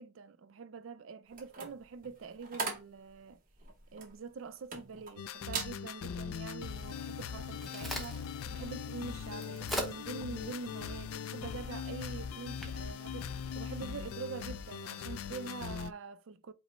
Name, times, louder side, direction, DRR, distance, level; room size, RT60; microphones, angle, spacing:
voice 1, 0.0-3.4 3.9-16.5, right 4 dB, 75° right, 0.4 m, -45 dB
sound 1, 1.3-5.1 5.4-5.8 6.2-6.5, right 4 dB, 40° right, 0.9 m, -40 dB
sound 2, 5.2-15.9, left 7 dB, 90° left, 0.3 m, -41 dB
Crack, 7.2-14.1, equal, ahead, 0.7 m, -45 dB
5.1 x 2.0 x 4.3 m
head